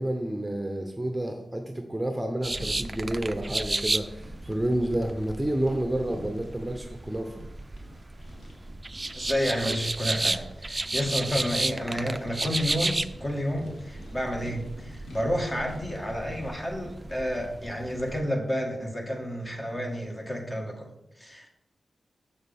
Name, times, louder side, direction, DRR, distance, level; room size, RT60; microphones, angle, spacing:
voice 1, 0.0-7.4, right 1 dB, 10° right, 4 dB, 0.9 m, -30 dB
sound 1, 2.4-18.2, right 2 dB, 30° right, 0.4 m, -33 dB
sound 2, 2.5-20.2, left 1 dB, 80° left, 1.6 m, -49 dB
voice 2, 9.1-20.9 21.2-21.5, equal, 25° left, 2 dB, 1.8 m, -30 dB
7.1 x 6.4 x 3.6 m, 0.87 s
cardioid pair, 45°, 0 cm